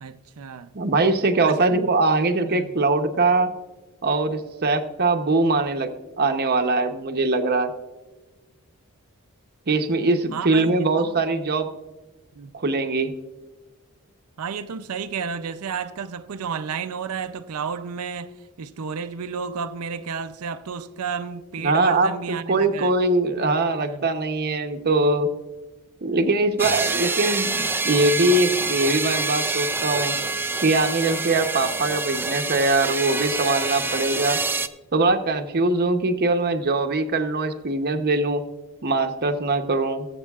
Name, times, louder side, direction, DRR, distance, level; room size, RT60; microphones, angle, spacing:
voice 1, 0.0-0.7 1.4-1.8 2.5-2.7 10.3-11.2 12.4-12.5 14.4-22.9 23.8-24.1, right 6 dB, 85° right, 0.5 m, -32 dB
voice 2, 0.7-3.5 4.0-7.7 9.7-11.7 12.5-13.2 21.6-25.3 26.0-30.2 30.6-34.4 34.9-38.5 38.8-40.1, right 2 dB, 45° right, 0.8 m, -22 dB
sound 1, 26.6-34.7, right 3 dB, 10° right, 0.3 m, -26 dB
21.5 x 7.5 x 2.4 m
head